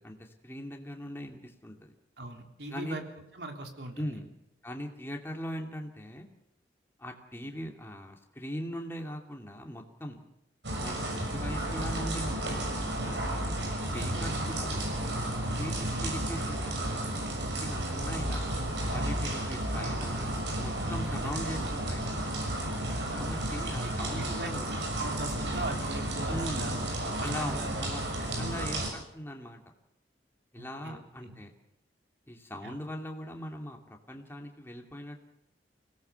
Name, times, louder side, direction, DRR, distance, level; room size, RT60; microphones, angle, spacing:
voice 1, 0.0-1.9 2.7-3.0 3.9-4.3 4.6-6.3 7.0-10.2 10.8-13.4 13.9-14.8 15.5-18.5 18.9-20.3 20.6-22.4 23.1-24.8 26.3-26.8 27.2-29.6 30.5-31.5 32.3-35.2, equal, 15° left, 2 dB, 2.4 m, -40 dB
voice 2, 2.2-3.0 3.3-4.2 13.7-14.1 18.9-19.2 21.2-21.5 23.4-26.8 27.2-27.9 28.3-28.5 30.6-31.4 32.6-32.8, right 2 dB, 65° right, 3 dB, 3.5 m, -41 dB
sound 1, 10.6-28.9, right 1 dB, 80° right, 6.5 m, -32 dB
25.0 x 18.0 x 6.9 m, 0.81 s
head